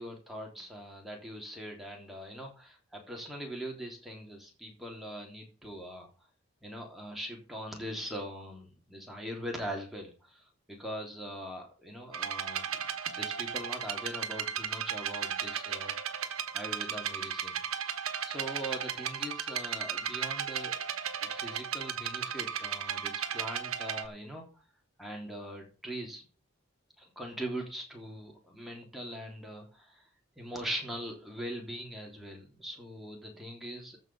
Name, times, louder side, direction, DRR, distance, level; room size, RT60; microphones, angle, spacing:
voice 1, 0.0-6.1 6.6-10.4 10.7-20.8 21.2-24.4 25.0-26.3 27.0-30.0 30.4-34.0, equal, ahead, 0 dB, 3.3 m, -41 dB
sound 1, 12.1-24.1, right 8 dB, 75° right, 1.4 m, -35 dB
14.0 x 5.5 x 7.0 m, 0.36 s
head